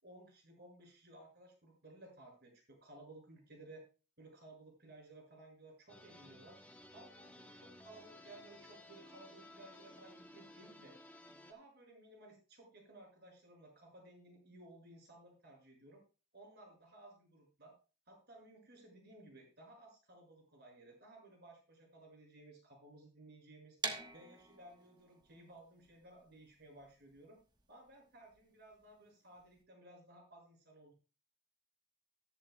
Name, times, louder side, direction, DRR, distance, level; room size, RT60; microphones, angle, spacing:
voice 1, 0.0-3.8 4.2-6.6 6.9-10.9 11.5-16.0 16.3-17.7 18.1-23.8 24.1-27.4 27.7-30.9, right 2 dB, 50° right, 0 dB, 6.5 m, -58 dB
sound 1, 5.9-11.5, left 1 dB, 5° left, 1.1 m, -57 dB
sound 2, 23.8-29.6, right 3 dB, 20° right, 1.2 m, -46 dB
14.0 x 12.0 x 2.3 m, 0.34 s
head